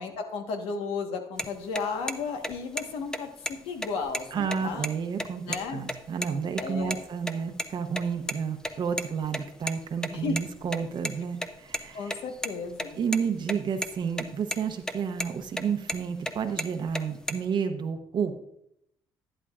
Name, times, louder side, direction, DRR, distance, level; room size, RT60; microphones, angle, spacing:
voice 1, 0.0-4.9 5.4-5.9 6.6-7.0 10.1-10.4 11.9-13.0, left 4 dB, 80° left, 5 dB, 1.3 m, -34 dB
sound 1, 1.4-1.5 1.8-1.9 2.1-2.2 2.4-2.8 3.1-3.2 3.5-3.6 3.8-4.9 5.2-5.3 5.5-5.6 5.9-6.3 6.6-7.0 7.3-8.3 8.6-11.1 11.4-13.2 13.5-13.6 13.8-14.2 14.5-14.9 15.2-16.3 16.6-17.3, equal, 5° left, 0.7 m, -32 dB
voice 2, 4.3-5.4 5.7-12.2 13.0-18.4, right 6 dB, 55° right, 6 dB, 0.8 m, -31 dB
11.0 x 10.0 x 2.4 m, 0.75 s
cardioid pair, 80°, 9 cm